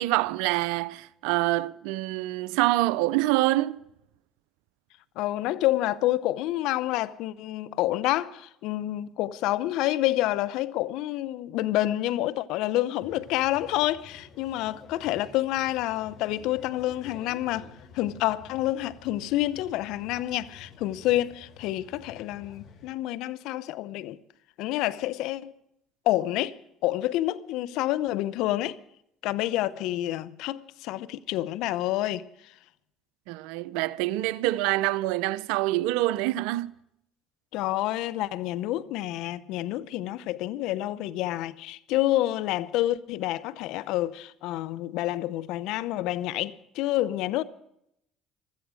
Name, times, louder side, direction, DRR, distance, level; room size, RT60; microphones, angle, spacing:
voice 1, 0.0-3.8 33.3-36.7, right 17 dB, 80° right, 0.5 m, -26 dB
voice 2, 5.2-17.7 17.9-24.2 24.6-25.5 26.1-26.6 26.8-28.8 29.2-32.3 37.5-47.4, left 15 dB, 75° left, 0.7 m, -28 dB
sound 1, 13.0-22.9, left 5 dB, 60° left, 3.3 m, -50 dB
15.5 x 13.5 x 6.3 m
supercardioid pair, 75°, 0 cm